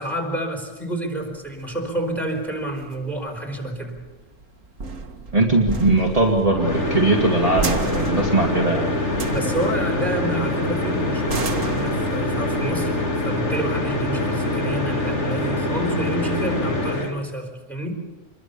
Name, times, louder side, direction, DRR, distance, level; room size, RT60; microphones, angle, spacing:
voice 1, 0.0-4.0 9.3-12.9 13.2-17.9, right 1 dB, ahead, 2 dB, 4.7 m, -29 dB
sound 1, 1.2-14.2, right 3 dB, 80° right, 2.0 m, -34 dB
voice 2, 5.3-8.9, right 2 dB, 30° right, -1 dB, 2.2 m, -20 dB
sound 2, 6.4-17.1, left 1 dB, 65° left, 3.1 m, -24 dB
26.5 x 22.0 x 6.9 m, 1.2 s
omnidirectional pair, 1.3 m